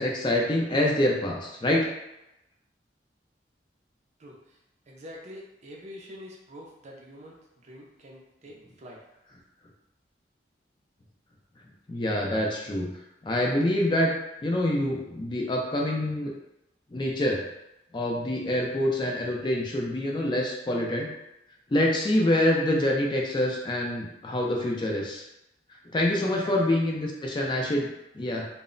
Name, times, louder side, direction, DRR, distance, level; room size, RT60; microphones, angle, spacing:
voice 1, 0.0-1.9 11.9-12.9 13.2-14.1 14.4-16.3 16.9-17.4 17.9-21.1 21.7-25.2 25.9-28.5, left 1 dB, 25° left, -1 dB, 0.4 m, -26 dB
voice 2, 4.2-4.6 4.9-9.0 26.2-26.7, equal, 40° right, -1 dB, 0.4 m, -46 dB
2.0 x 2.0 x 3.7 m, 0.89 s
head